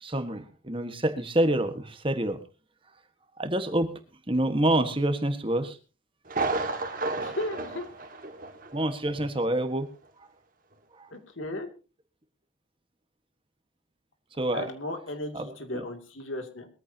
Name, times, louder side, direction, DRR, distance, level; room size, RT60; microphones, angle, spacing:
voice 1, 0.0-2.4 3.4-3.9 4.3-5.8 8.7-9.9 14.4-14.7 15.3-15.8, right 1 dB, 25° right, 8 dB, 1.5 m, -27 dB
Thunder, 6.3-8.8 9.1-9.2 9.8-9.9, right 3 dB, 45° right, 1.9 m, -32 dB
voice 2, 7.1-7.9 11.1-11.7 14.5-16.7, left 1 dB, 80° left, 5 dB, 2.7 m, -35 dB
21.5 x 14.5 x 2.9 m, 0.33 s
head